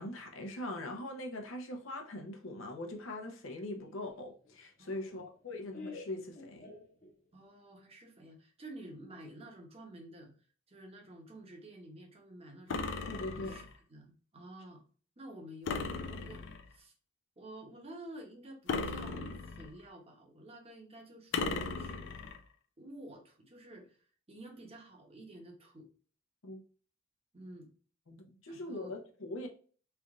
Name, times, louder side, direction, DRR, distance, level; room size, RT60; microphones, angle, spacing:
voice 1, 0.0-6.7 13.0-13.6 26.4-26.6 28.1-29.5, left 1 dB, 80° left, 0.8 m, -42 dB
Laughter, 3.8-7.4, left 3 dB, 40° left, 1.0 m, -51 dB
voice 2, 4.8-5.2 7.3-10.3 10.7-12.9 13.3-14.8 15.2-16.4 16.7-16.9 17.4-22.2 22.8-24.0 24.3-25.9 27.3-27.7 28.5-28.9, right 1 dB, 30° right, 1.0 m, -51 dB
sound 1, 12.7-13.8 15.7-16.7 18.7-19.8 21.3-22.4, left 4 dB, 65° left, 0.5 m, -37 dB
3.4 x 2.6 x 3.6 m
head